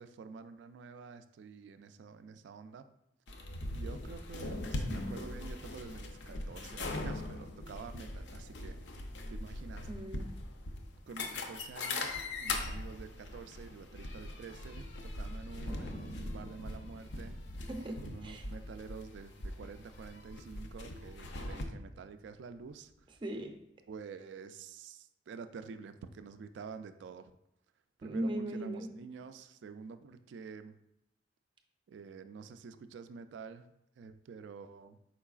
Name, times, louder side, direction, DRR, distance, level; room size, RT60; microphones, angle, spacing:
voice 1, 0.0-2.9 3.7-8.8 9.3-9.9 10.9-17.4 18.0-23.1 23.9-27.3 28.0-30.8 31.9-33.7 34.0-35.0, right 5 dB, 85° right, 11 dB, 0.3 m, -48 dB
sound 1, 3.3-21.6, left 2 dB, 85° left, 0.6 m, -41 dB
voice 2, 9.9-10.3 17.7-18.4 23.2-23.6 28.0-28.9, right 1 dB, 30° right, 4 dB, 0.5 m, -38 dB
Thunder, 15.7-20.5 20.7-20.8 21.1-21.6 22.1-23.3, left 2 dB, 35° left, 0.4 m, -51 dB
4.7 x 4.5 x 2.4 m, 0.84 s
head